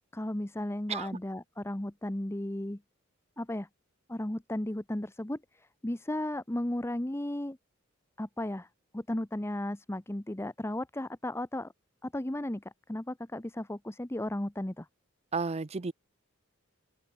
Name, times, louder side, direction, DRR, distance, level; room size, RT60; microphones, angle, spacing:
voice 1, 0.1-2.8 3.4-3.7 4.1-7.6 8.2-8.7 8.9-11.7 12.0-14.9, left 1 dB, 10° left, 0.9 m, -35 dB
voice 2, 15.3-15.9, right 4 dB, 30° right, 0.6 m, -32 dB
open air
head